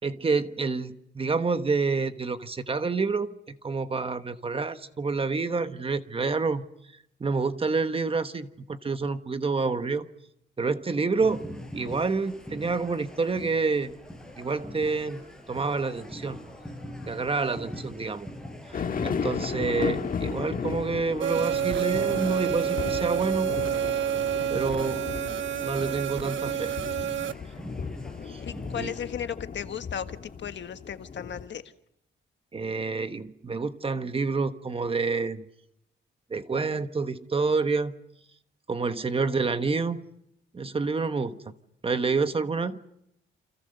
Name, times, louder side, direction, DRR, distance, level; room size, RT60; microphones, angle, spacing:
voice 1, 0.0-3.3 3.6-6.7 7.2-10.1 10.6-11.5 11.7-14.0 14.4-15.2 15.5-16.4 17.1-18.3 18.7-23.6 24.5-25.0 25.6-26.7 28.3-28.4 28.7-28.9 32.5-35.4 36.3-37.9 38.7-40.0 40.5-41.4 41.8-42.8, right 4 dB, 25° right, 10 dB, 1.2 m, -28 dB
sound 1, 11.2-29.1, left 1 dB, 5° left, 4.8 m, -43 dB
sound 2, 18.7-31.5, left 6 dB, 40° left, 1.6 m, -35 dB
sound 3, 21.2-27.3, right 9 dB, 65° right, 1.1 m, -28 dB
voice 2, 28.4-31.6 41.3-41.4, left 8 dB, 60° left, 10 dB, 1.5 m, -35 dB
29.0 x 28.0 x 6.7 m, 0.77 s
wide cardioid pair, 175°, 21 cm